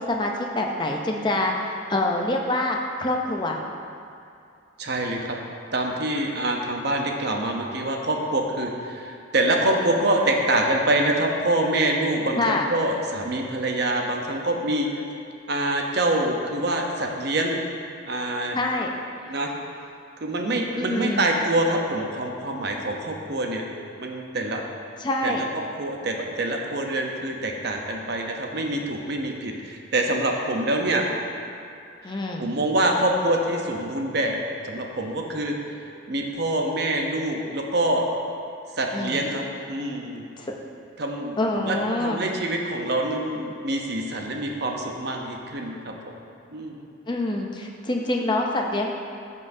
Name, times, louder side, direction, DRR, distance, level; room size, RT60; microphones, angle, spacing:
voice 1, 0.0-1.5 1.9-3.6 12.4-12.7 18.5-18.9 20.8-21.3 25.0-25.4 32.0-32.5 38.9-39.2 40.4-40.5 41.4-42.2 47.1-48.9, left 1 dB, 20° left, 0 dB, 0.6 m, -25 dB
voice 2, 4.8-5.4 5.7-15.0 15.5-17.6 18.1-18.6 19.3-19.5 20.2-23.6 24.0-24.6 25.2-25.4 25.8-31.1 32.0-34.4 34.6-35.6 36.1-38.1 38.8-40.2 41.0-45.9 46.5-46.8, right 1 dB, 55° right, 1 dB, 0.8 m, -25 dB
13.0 x 5.5 x 2.7 m, 2.5 s
head